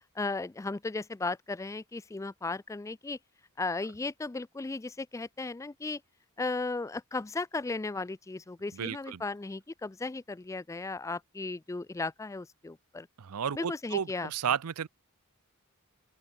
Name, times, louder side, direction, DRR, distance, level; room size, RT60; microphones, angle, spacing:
voice 1, 0.2-3.2 3.6-6.0 6.4-13.1 13.6-14.3, left 3 dB, 15° left, 0.3 m, -35 dB
voice 2, 8.7-9.2 13.2-14.9, right 7 dB, 85° right, 0.6 m, -33 dB
open air
head